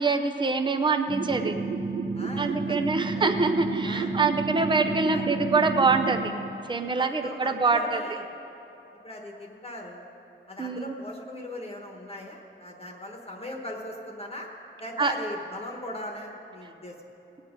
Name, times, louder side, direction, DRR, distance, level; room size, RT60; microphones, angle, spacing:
voice 1, 0.0-1.5 2.4-6.3 6.7-8.0 10.6-10.9 15.0-15.1, right 4 dB, 20° right, 6 dB, 0.6 m, -25 dB
sound 1, 1.1-6.2, right 4 dB, 65° right, 1.6 m, -30 dB
voice 2, 2.1-2.8 3.1-3.2 3.8-4.1 5.1-5.2 7.0-8.2 9.0-10.0 10.5-14.5 14.8-16.9, left 1 dB, 30° left, 0 dB, 1.2 m, -39 dB
19.0 x 8.2 x 5.2 m, 2.9 s
wide cardioid pair, 145°, 21 cm